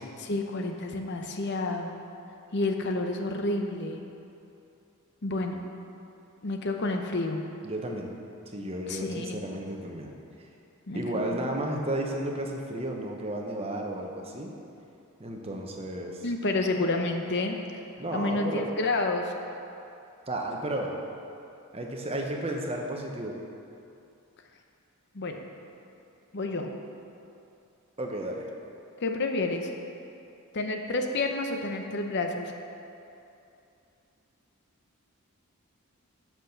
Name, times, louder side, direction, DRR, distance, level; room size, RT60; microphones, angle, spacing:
voice 1, 0.2-2.0 2.5-4.0 5.2-5.6 6.4-7.4 8.9-9.4 10.9-11.0 11.3-11.4 16.2-17.6 18.1-19.3 25.1-25.5 26.3-26.7 29.0-29.7 30.5-32.5, left 2 dB, 50° left, 4 dB, 0.7 m, -29 dB
voice 2, 7.6-8.1 8.5-10.1 10.4-10.5 10.9-14.5 15.2-16.3 18.0-18.6 20.3-20.9 21.7-23.3 28.0-28.5, right 1 dB, 25° right, 1 dB, 0.8 m, -33 dB
8.1 x 6.0 x 6.7 m, 2.7 s
head